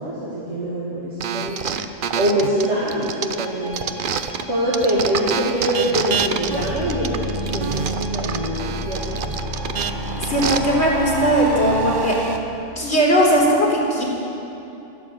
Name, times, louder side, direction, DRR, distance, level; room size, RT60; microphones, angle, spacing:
voice 1, 0.0-1.7 2.1-3.8 4.5-9.3, right 1 dB, 65° right, -7 dB, 2.6 m, -24 dB
sound 1, 1.2-4.4 4.7-10.6, right 6 dB, 50° right, 0.8 m, -26 dB
sound 2, 2.5-11.2, left 1 dB, 10° left, 4.7 m, -40 dB
sound 3, 6.2-12.4, right 1 dB, 20° right, 1.0 m, -29 dB
voice 2, 10.2-12.2 12.8-14.0, equal, 60° left, -4 dB, 4.1 m, -18 dB
13.5 x 12.0 x 8.7 m, 2.8 s
omnidirectional pair, 1.3 m